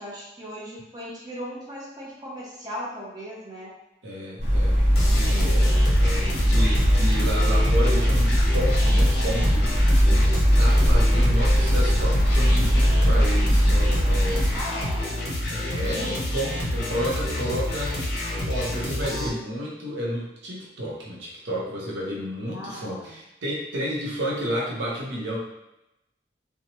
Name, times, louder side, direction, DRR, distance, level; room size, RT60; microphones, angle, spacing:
voice 1, 0.0-3.7 4.9-5.7 14.5-15.2 22.5-23.1, equal, 20° right, -7 dB, 0.7 m, -38 dB
voice 2, 4.0-4.8 5.1-14.4 15.5-25.4, equal, 90° right, -4 dB, 0.8 m, -31 dB
sound 1, 4.4-14.6, equal, 40° right, 1.1 m, -20 dB
sound 2, 4.9-19.3, left 1 dB, 55° left, 0.6 m, -29 dB
2.8 x 2.2 x 2.9 m, 0.89 s
head